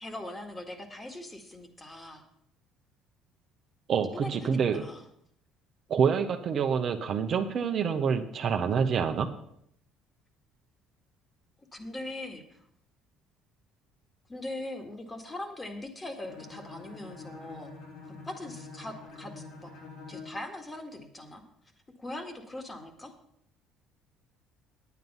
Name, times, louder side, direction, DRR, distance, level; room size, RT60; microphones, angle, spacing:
voice 1, 0.0-2.2 4.1-5.0 11.7-12.6 14.3-17.7 18.2-19.7 20.1-21.4 22.0-23.1, left 1 dB, 20° left, 6 dB, 1.9 m, -41 dB
voice 2, 3.9-4.8 5.9-9.3, right 6 dB, 50° right, 6 dB, 1.0 m, -27 dB
Bowed string instrument, 16.2-20.4, left 4 dB, 75° left, 3.7 m, -46 dB
9.5 x 9.2 x 5.6 m, 0.71 s
supercardioid pair, 85°, 0 cm